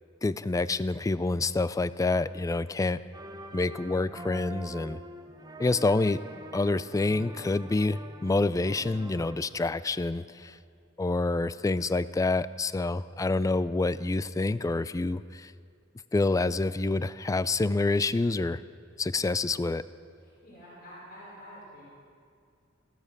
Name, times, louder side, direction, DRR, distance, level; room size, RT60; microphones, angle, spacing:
voice 1, 0.2-3.0 3.5-5.0 5.6-6.2 6.5-10.6 11.0-15.5 16.1-18.6 19.0-19.8, left 3 dB, 15° left, 16 dB, 0.3 m, -27 dB
sound 1, 3.1-9.4, right 2 dB, 20° right, 0.7 m, -44 dB
voice 2, 20.2-21.8, equal, 50° left, -8 dB, 4.9 m, -48 dB
16.0 x 12.5 x 6.6 m, 2.4 s
head